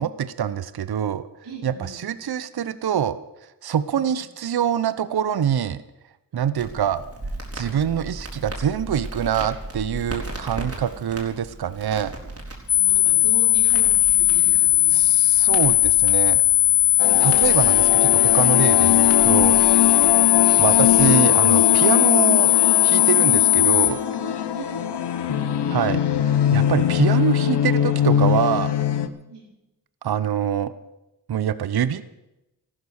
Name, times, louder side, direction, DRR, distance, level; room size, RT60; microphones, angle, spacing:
voice 1, 0.0-1.2 1.6-3.2 3.6-5.8 6.3-7.0 7.5-12.1 14.9-16.4 17.2-19.6 20.6-22.5 22.8-24.0 25.7-26.0 26.3-28.7 30.0-30.7 31.3-32.0, right 9 dB, 65° right, 14 dB, 0.8 m, -24 dB
voice 2, 1.4-2.3 3.9-4.0 10.7-11.0 12.7-15.6 18.7-18.9 19.9-20.1 23.5-23.7 24.2-25.7 29.2-29.5, right 3 dB, 85° right, -2 dB, 5.0 m, -40 dB
Crackle, 6.5-21.0, right 1 dB, 35° right, 4.0 m, -37 dB
sound 1, 12.7-23.9, left 16 dB, 60° left, 1.2 m, -17 dB
sound 2, 17.0-29.1, left 9 dB, 80° left, 1.0 m, -22 dB
14.5 x 12.5 x 6.4 m, 0.95 s
cardioid pair, 55°, 40 cm